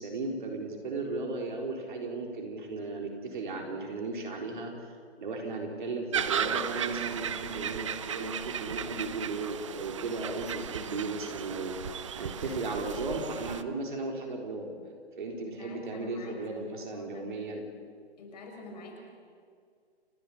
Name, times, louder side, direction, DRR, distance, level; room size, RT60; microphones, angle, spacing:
voice 1, 0.0-4.7 5.2-14.7 15.2-17.7, right 3 dB, 45° right, 2 dB, 3.9 m, -35 dB
sound 1, 6.1-13.6, right 8 dB, 30° right, 0.6 m, -35 dB
voice 2, 15.4-17.3 18.2-19.0, left 2 dB, 40° left, 2 dB, 5.7 m, -46 dB
29.5 x 11.0 x 9.8 m, 2.1 s
figure-of-eight pair, 145°, 33 cm